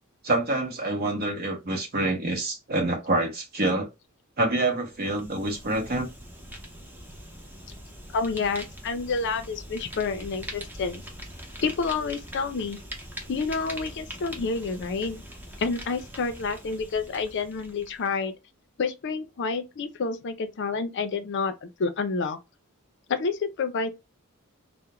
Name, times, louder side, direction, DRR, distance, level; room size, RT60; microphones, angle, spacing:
voice 1, 0.2-3.9 4.4-6.1, right 2 dB, 45° right, 0.8 m, -26 dB
Fire, 4.8-18.1, equal, 10° right, 0.6 m, -42 dB
voice 2, 8.1-11.0 11.6-12.8 13.3-15.2 15.6-18.3 18.8-22.4 23.1-23.9, left 4 dB, 55° left, 0.4 m, -29 dB
2.4 x 2.1 x 2.9 m
head